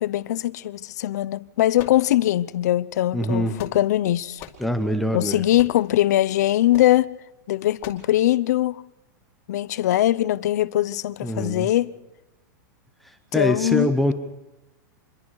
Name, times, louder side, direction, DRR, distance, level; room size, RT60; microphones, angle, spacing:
voice 1, 0.0-4.4 5.1-7.1 7.5-8.8 9.5-11.9 13.3-14.1, left 14 dB, 55° left, 0.8 m, -21 dB
sound 1, 1.7-2.5 3.3-4.0 4.4-4.7 5.6-5.9 6.7-6.9 7.8-8.1, left 10 dB, 25° left, 2.5 m, -42 dB
voice 2, 3.1-3.6 4.6-5.4 11.2-11.7 13.0-14.1, equal, ahead, 0.8 m, -24 dB
27.0 x 22.5 x 4.8 m
supercardioid pair, 175°, 11 cm